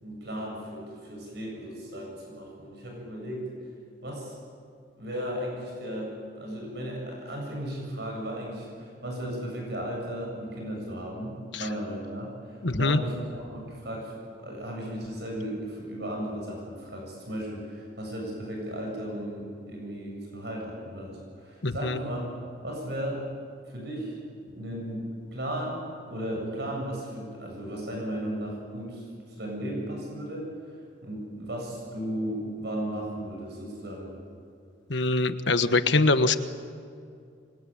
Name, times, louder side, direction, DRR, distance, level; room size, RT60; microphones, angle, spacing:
voice 1, 0.0-3.5 4.0-4.4 4.9-22.3 22.6-23.2 23.6-24.2 24.5-34.2, equal, 60° right, -1 dB, 7.5 m, -35 dB
voice 2, 12.6-13.0 21.6-22.0 34.9-36.4, left 3 dB, 70° left, 10 dB, 1.3 m, -23 dB
28.0 x 23.5 x 9.2 m, 2.3 s
head